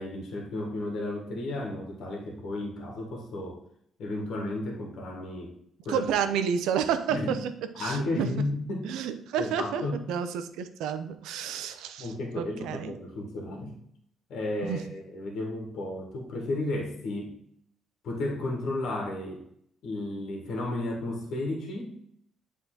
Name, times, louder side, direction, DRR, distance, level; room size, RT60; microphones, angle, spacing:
voice 1, 0.0-3.6 4.0-5.5 5.8-6.1 7.1-7.3 7.7-8.9 9.4-10.0 12.0-13.7 14.3-17.4 18.0-19.4 19.8-21.9, left 2 dB, 75° left, 1 dB, 1.8 m, -33 dB
voice 2, 5.9-7.5 7.8-8.3 8.8-9.8 10.1-12.9 14.6-14.8, right 8 dB, 85° right, 10 dB, 0.6 m, -30 dB
8.0 x 3.8 x 3.9 m, 0.70 s
supercardioid pair, 75°, 0 cm